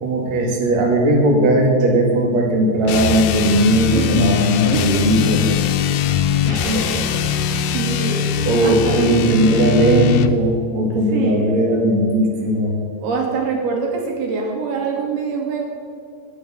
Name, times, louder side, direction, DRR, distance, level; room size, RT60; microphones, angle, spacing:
voice 1, 0.0-5.4 6.4-6.9 8.4-12.7, right 1 dB, 50° right, -1 dB, 3.1 m, -17 dB
sound 1, 2.8-10.4, left 8 dB, 80° left, 1.9 m, -21 dB
voice 2, 6.4-7.3 7.7-8.3 8.6-9.1 11.1-11.6 13.0-15.7, right 5 dB, 75° right, 0 dB, 3.9 m, -25 dB
20.0 x 6.7 x 7.5 m, 2.3 s
omnidirectional pair, 4.6 m